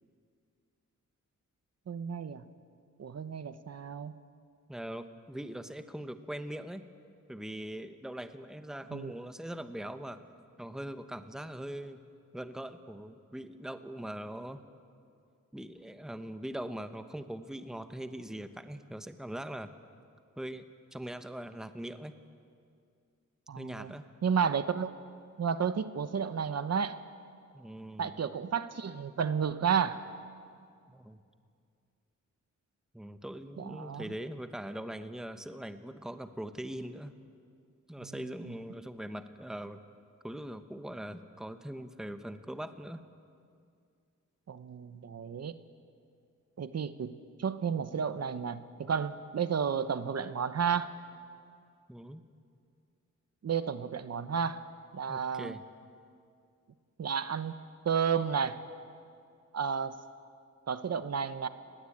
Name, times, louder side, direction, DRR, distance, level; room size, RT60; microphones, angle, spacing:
voice 1, 1.9-2.4 3.0-4.1 8.9-9.1 23.5-23.9 24.2-24.9 25.4-27.0 28.0-30.0 33.6-34.1 38.0-38.5 44.5-45.5 46.6-50.9 53.4-54.6 54.9-55.6 57.0-57.6 57.8-58.6 59.5-59.9 60.7-61.5, right 7 dB, 55° right, 12 dB, 0.9 m, -32 dB
voice 2, 4.7-6.8 7.3-10.2 10.6-12.0 12.3-14.6 15.5-19.7 20.4-20.6 20.9-22.1 23.6-24.0 27.5-28.1 30.9-31.2 32.9-37.1 37.9-39.8 40.2-43.0 51.9-52.2 55.1-55.6, right 1 dB, ahead, 9 dB, 1.0 m, -41 dB
30.0 x 20.5 x 8.6 m, 2.3 s
wide cardioid pair, 150°, 30 cm